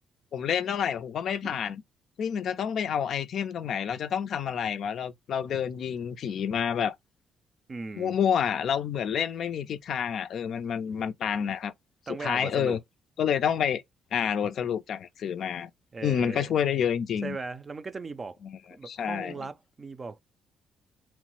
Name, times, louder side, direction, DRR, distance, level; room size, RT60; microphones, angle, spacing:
voice 1, 0.3-1.8 2.2-7.0 8.0-11.7 12.2-12.8 13.2-13.8 14.1-15.7 16.0-17.4 18.4-18.5 18.9-19.3, left 8 dB, 65° left, 0.3 m, -28 dB
voice 2, 7.7-8.2 12.1-12.8 15.9-16.5 17.2-18.4 18.7-20.2, right 4 dB, 35° right, 0.4 m, -38 dB
3.0 x 2.0 x 3.0 m
cardioid pair, 90°, 0 cm